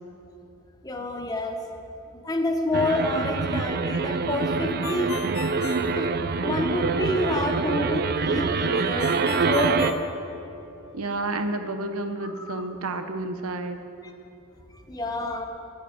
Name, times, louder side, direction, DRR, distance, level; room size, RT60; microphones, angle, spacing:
voice 1, 0.8-1.6 2.2-5.1 5.9-10.0 12.2-12.7 14.9-15.4, left 1 dB, 15° left, 3 dB, 1.0 m, -28 dB
sound 1, 2.7-9.9, right 4 dB, 45° right, 0.5 m, -25 dB
Ringtone, 4.8-6.7 9.0-10.9, left 5 dB, 85° left, 0.8 m, -38 dB
voice 2, 10.9-13.8, right 2 dB, 90° right, 8 dB, 0.9 m, -30 dB
10.0 x 9.0 x 8.6 m, 2.9 s
head